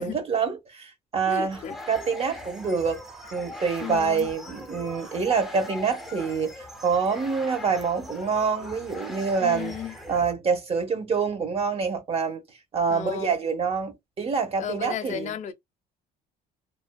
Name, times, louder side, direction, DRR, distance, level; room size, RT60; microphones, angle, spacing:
voice 1, 0.0-1.6 1.9-3.0 3.3-9.7 10.1-12.4 12.7-15.3, right 5 dB, 35° right, 0.8 m, -26 dB
voice 2, 1.3-1.8 3.8-4.3 9.4-10.0 12.9-13.4 14.6-15.5, left 8 dB, 45° left, 0.5 m, -34 dB
sound 1, 1.5-10.3, left 1 dB, ahead, 0.5 m, -41 dB
2.5 x 2.2 x 2.2 m
cardioid pair, 110°, 17 cm